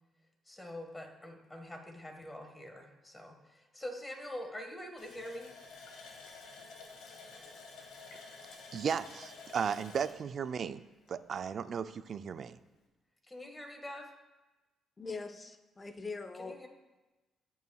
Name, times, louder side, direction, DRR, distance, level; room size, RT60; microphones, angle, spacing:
voice 1, 0.5-5.5 13.3-14.1 16.4-16.7, left 1 dB, 15° left, 3 dB, 1.6 m, -45 dB
Water tap faucet, 5.0-11.5 11.8-11.9 12.4-12.5, left 4 dB, 85° left, 1.3 m, -51 dB
voice 2, 8.7-10.8 11.1-12.6, right 7 dB, 55° right, 13 dB, 0.4 m, -35 dB
voice 3, 15.0-16.6, left 4 dB, 30° left, 8 dB, 0.7 m, -42 dB
15.5 x 5.6 x 2.3 m, 1.1 s
cardioid pair, 90°, 0 cm